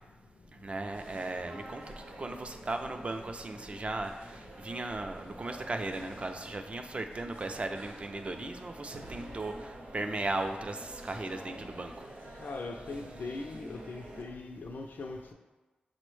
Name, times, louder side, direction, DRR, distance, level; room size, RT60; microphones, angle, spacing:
voice 1, 0.5-12.1, right 2 dB, 40° right, 6 dB, 0.3 m, -37 dB
sound 1, 0.6-14.2, right 1 dB, 75° right, 0.7 m, -48 dB
voice 2, 12.4-15.3, left 3 dB, 75° left, 2 dB, 0.3 m, -40 dB
5.9 x 2.1 x 3.1 m, 1.2 s
wide cardioid pair, 90°, 3 cm